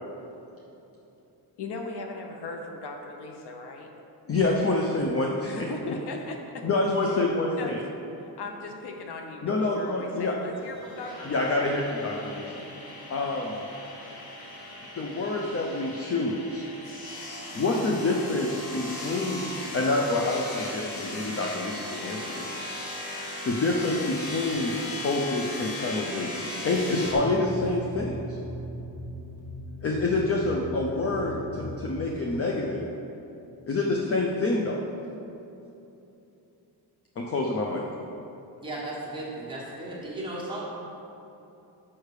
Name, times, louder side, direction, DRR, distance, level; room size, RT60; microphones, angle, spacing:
voice 1, 1.6-3.9 5.4-6.7 7.1-7.2 7.6-7.9 8.2-11.7, left 3 dB, 85° left, 3 dB, 0.9 m, -38 dB
voice 2, 4.3-5.9 6.6-7.8 9.4-10.3 11.2-12.4 13.1-13.6 15.0-16.7 17.5-19.4 19.7-22.5 23.4-24.7 25.0-28.4 29.8-32.8 33.7-34.8 37.2-37.8, left 2 dB, 35° left, -1 dB, 0.5 m, -27 dB
sound 1, 10.5-27.1, left 1 dB, 65° left, 1.4 m, -38 dB
sound 2, 26.9-32.2, equal, 5° left, 1.6 m, -38 dB
voice 3, 38.6-40.6, right 1 dB, 10° right, -7 dB, 1.4 m, -35 dB
6.5 x 5.6 x 4.8 m, 2.9 s
wide cardioid pair, 175°, 39 cm